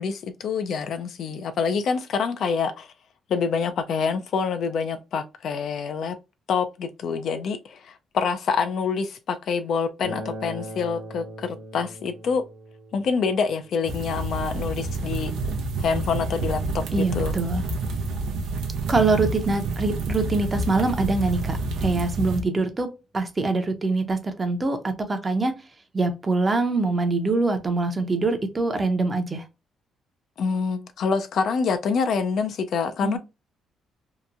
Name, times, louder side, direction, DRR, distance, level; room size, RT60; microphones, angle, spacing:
voice 1, 0.0-2.9 3.3-6.2 6.5-12.4 12.9-15.3 15.8-17.3 30.4-33.2, left 5 dB, 65° left, 0.4 m, -26 dB
Acoustic guitar, 10.0-15.2, right 1 dB, 60° right, 1.1 m, -41 dB
sound 1, 13.9-22.4, right 3 dB, 80° right, 0.6 m, -28 dB
voice 2, 16.9-17.6 18.9-25.6 25.9-29.5 33.0-33.2, right 3 dB, 25° right, 0.6 m, -24 dB
2.8 x 2.2 x 2.4 m
cardioid pair, 90°, 0 cm